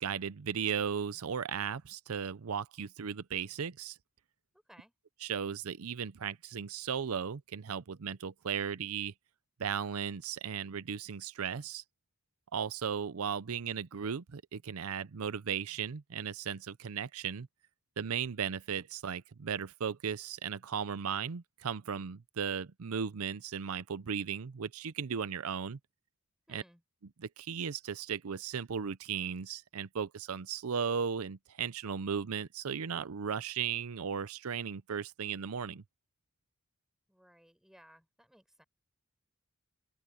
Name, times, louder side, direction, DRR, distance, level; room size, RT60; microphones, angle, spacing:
voice 1, 0.0-4.0 5.2-9.1 9.6-11.8 12.5-17.5 18.0-25.8 26.5-26.6 27.2-35.8, right 7 dB, 80° right, 0.6 m, -36 dB
voice 2, 26.5-26.8 37.1-38.6, equal, ahead, 5.6 m, -60 dB
open air
head